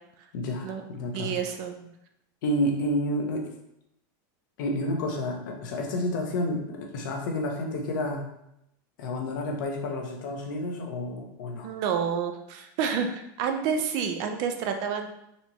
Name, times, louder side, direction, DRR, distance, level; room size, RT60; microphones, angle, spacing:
voice 1, 0.3-1.4 2.4-3.5 4.6-8.2 9.0-11.7, left 1 dB, 70° left, 2 dB, 0.8 m, -30 dB
voice 2, 1.1-1.9 11.6-15.1, right 7 dB, 40° right, 5 dB, 0.3 m, -29 dB
4.1 x 3.0 x 2.8 m, 0.80 s
supercardioid pair, 175°, 11 cm